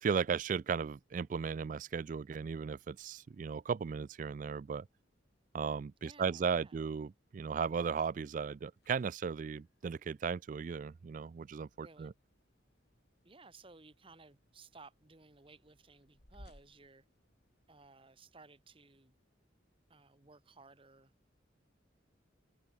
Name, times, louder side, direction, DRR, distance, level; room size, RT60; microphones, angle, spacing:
voice 1, 0.0-4.9 5.5-12.1, right 6 dB, 45° right, 0.3 m, -36 dB
voice 2, 6.0-6.8 11.8-12.1 13.2-17.0 17.7-19.2 19.9-21.1, right 3 dB, 30° right, 1.5 m, -58 dB
sound 1, 8.8-17.9, left 1 dB, 55° left, 4.0 m, -65 dB
head